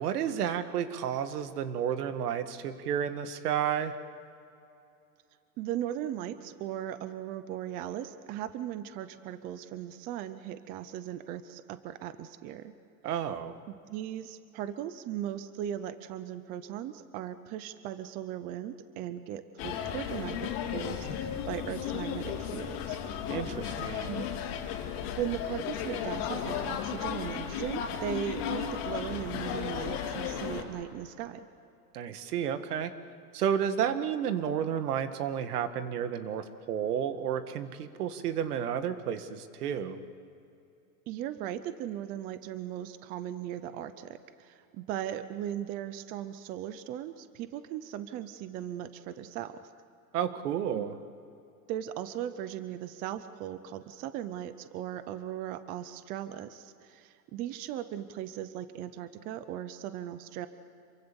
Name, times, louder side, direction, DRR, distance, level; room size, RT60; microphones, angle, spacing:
voice 1, 0.0-3.9 13.0-13.6 23.3-24.2 31.9-32.9 33.3-40.0 50.1-50.9, right 9 dB, 75° right, 9 dB, 2.0 m, -31 dB
voice 2, 5.6-12.8 13.7-23.0 24.1-24.3 25.2-31.5 41.1-49.6 50.7-50.9 51.7-60.5, right 11 dB, 20° right, 12 dB, 0.5 m, -38 dB
sound 1, 19.6-30.6, left 8 dB, 45° left, 3.2 m, -35 dB
27.5 x 23.5 x 7.0 m, 2.6 s
supercardioid pair, 160°, 46 cm